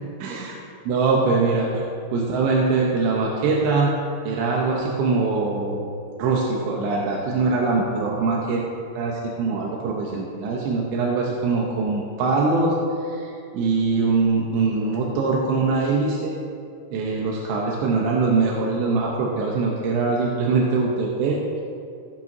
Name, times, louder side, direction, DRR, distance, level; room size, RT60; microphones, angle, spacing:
voice 1, 0.2-1.9 2.1-5.8 6.2-8.6 8.9-16.4 16.9-21.4, right 3 dB, 75° right, -1 dB, 2.7 m, -23 dB
17.5 x 9.0 x 2.7 m, 2.5 s
omnidirectional pair, 6.0 m